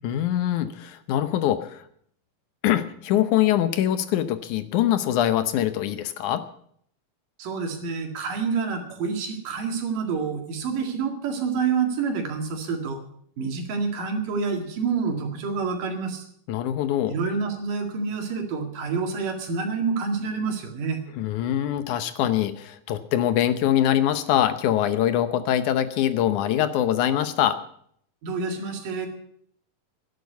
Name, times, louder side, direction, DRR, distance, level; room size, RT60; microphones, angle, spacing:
voice 1, 0.0-1.8 2.6-6.4 16.5-17.1 21.2-27.6, left 11 dB, 75° left, 12 dB, 2.2 m, -23 dB
voice 2, 7.4-13.0 13.4-16.2 17.1-21.0 28.2-29.1, right 5 dB, 80° right, 4 dB, 3.7 m, -28 dB
11.5 x 10.5 x 8.2 m, 0.65 s
omnidirectional pair, 3.7 m